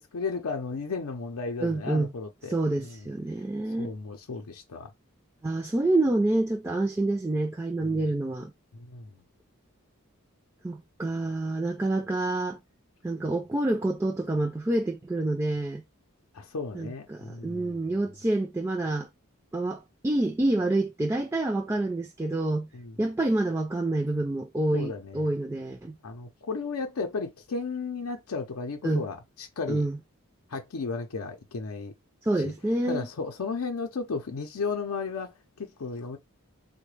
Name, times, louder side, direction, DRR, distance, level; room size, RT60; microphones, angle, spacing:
voice 1, 0.0-3.1 3.8-4.9 7.8-8.1 8.7-9.1 16.3-17.9 22.7-23.0 24.7-25.3 26.0-29.9 30.5-31.9 32.4-32.5 32.9-36.2, left 4 dB, 85° left, 0.6 m, -34 dB
voice 2, 1.6-2.1 2.5-3.9 5.4-8.5 10.6-12.6 13.0-15.8 16.7-19.1 19.5-22.7 23.0-26.0 28.8-29.0 29.7-30.0 32.2-33.1, right 2 dB, 15° right, 0.4 m, -27 dB
3.6 x 2.2 x 3.1 m
head